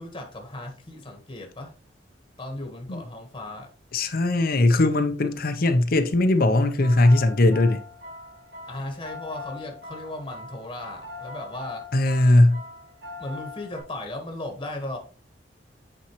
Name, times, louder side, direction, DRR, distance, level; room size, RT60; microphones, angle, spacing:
voice 1, 0.0-1.7 2.4-3.7 8.7-11.9 13.2-15.0, left 1 dB, 25° left, 1.3 m, -36 dB
voice 2, 3.9-7.8 11.9-12.6, left 2 dB, 55° left, 0.7 m, -19 dB
sound 1, 6.5-13.8, left 3 dB, 70° right, 3.7 m, -41 dB
8.6 x 4.4 x 3.0 m
head